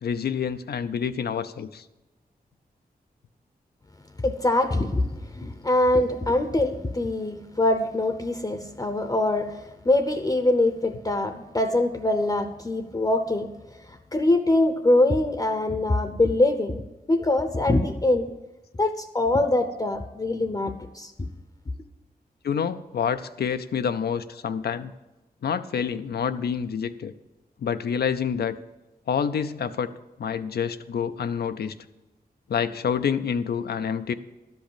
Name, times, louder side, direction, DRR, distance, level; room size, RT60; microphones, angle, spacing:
voice 1, 0.0-1.8 22.4-24.9 25.4-27.1 27.6-28.5 29.1-29.9 30.2-31.7 32.5-34.1, left 7 dB, 80° left, 10 dB, 0.5 m, -27 dB
voice 2, 4.2-13.5 13.9-16.8 17.1-18.3 18.8-21.3, left 2 dB, 25° left, 8 dB, 0.7 m, -23 dB
12.0 x 5.4 x 8.6 m, 1.1 s
wide cardioid pair, 85°, 16 cm